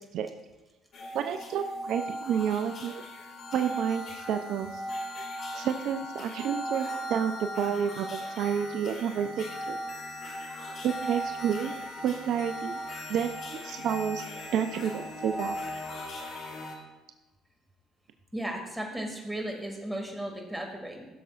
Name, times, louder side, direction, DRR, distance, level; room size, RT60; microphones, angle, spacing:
sound 1, 0.9-16.8, equal, 55° left, 1.9 m, -38 dB
voice 1, 1.1-3.0 3.5-4.8 5.5-9.8 10.8-11.7 12.0-12.8 13.1-13.3 13.6-14.2 14.5-15.6, right 8 dB, 65° right, 7 dB, 0.5 m, -30 dB
voice 2, 18.3-21.1, right 1 dB, 10° right, 1 dB, 2.4 m, -35 dB
15.5 x 6.9 x 2.5 m, 1.1 s
supercardioid pair, 70°, 0 cm